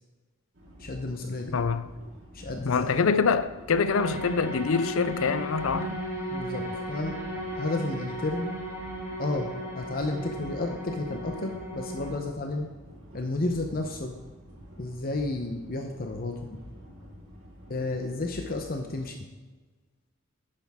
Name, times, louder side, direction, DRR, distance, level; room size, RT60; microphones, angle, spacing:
sound 1, 0.5-19.1, equal, 60° right, 3.8 m, -48 dB
voice 1, 0.8-1.6 2.3-2.8 6.3-7.2 7.6-8.5 9.2-12.7 13.1-14.2 14.8-16.5 17.7-19.2, left 2 dB, 45° left, 0.8 m, -32 dB
voice 2, 1.5-1.9 2.6-6.0, left 5 dB, 70° left, 0.5 m, -25 dB
sound 2, 3.8-12.1, right 1 dB, 15° right, 3.7 m, -35 dB
10.5 x 9.9 x 3.6 m
head